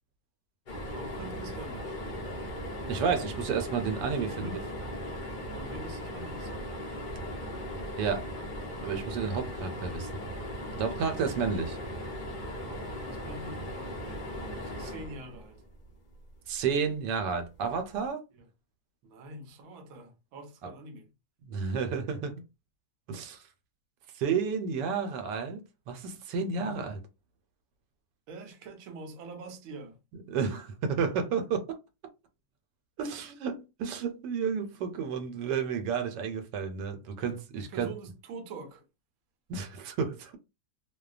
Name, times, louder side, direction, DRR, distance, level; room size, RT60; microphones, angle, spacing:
sound 1, 0.7-15.9 17.6-17.8 18.1-18.2, equal, 60° left, 0.5 m, -38 dB
voice 1, 0.8-2.0 4.3-4.6 5.5-7.0 12.5-14.2 14.5-15.6 19.0-21.1 26.5-26.9 28.3-30.0 37.5-38.8, right 2 dB, 70° right, 0.9 m, -45 dB
voice 2, 2.9-4.6 8.0-8.3 8.8-10.1 10.7-11.8 16.5-18.2 20.6-20.7 21.4-22.4 23.1-23.4 24.1-27.0 30.3-31.8 33.0-37.9 39.5-40.4, right 6 dB, 85° right, 1.2 m, -31 dB
2.7 x 2.1 x 2.3 m
omnidirectional pair, 1.8 m